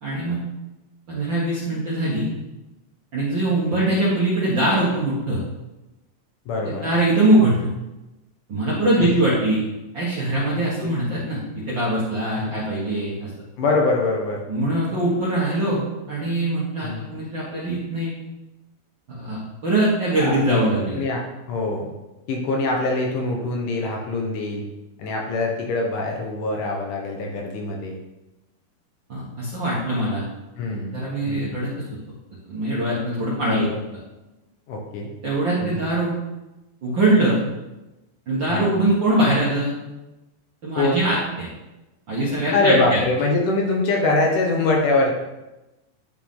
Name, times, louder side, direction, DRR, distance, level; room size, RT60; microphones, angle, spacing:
voice 1, 0.0-0.4 1.1-2.3 3.1-5.4 6.6-7.7 8.5-9.6 9.9-11.4 11.7-13.3 14.5-15.8 16.1-18.1 19.1-21.0 29.1-30.2 30.9-31.7 32.5-33.7 35.2-36.1 36.8-37.4 38.3-39.7 40.6-41.5 42.1-43.0, right 1 dB, 50° right, -7 dB, 1.4 m, -22 dB
voice 2, 6.5-6.9 9.0-9.2 10.8-10.9 12.4-12.6 13.6-14.4 16.8-17.1 20.2-21.9 22.3-24.7 25.0-28.0 30.6-31.0 31.3-31.6 33.5-33.8 34.7-35.1 35.6-35.8 38.5-38.8 40.8-41.1 42.5-45.1, left 2 dB, 70° left, 0 dB, 2.3 m, -24 dB
11.0 x 4.5 x 3.8 m, 1.0 s
omnidirectional pair, 4.1 m